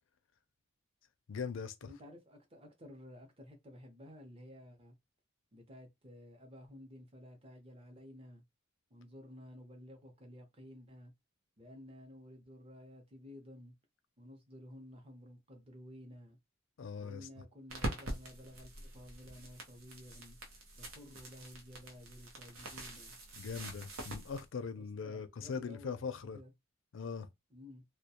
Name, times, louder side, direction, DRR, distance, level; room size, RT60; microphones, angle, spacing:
voice 1, 1.3-1.9 16.8-17.3 23.4-26.4 26.9-27.3, left 5 dB, 70° left, 0.4 m, -41 dB
voice 2, 1.8-5.0 5.5-8.4 8.9-11.1 11.6-13.7 14.2-16.4 17.0-20.4 20.8-23.2 24.7-26.5 27.5-27.8, left 1 dB, 30° right, 0.7 m, -53 dB
sound 1, 17.7-24.4, right 1 dB, 85° right, 0.8 m, -45 dB
2.3 x 2.2 x 2.8 m
head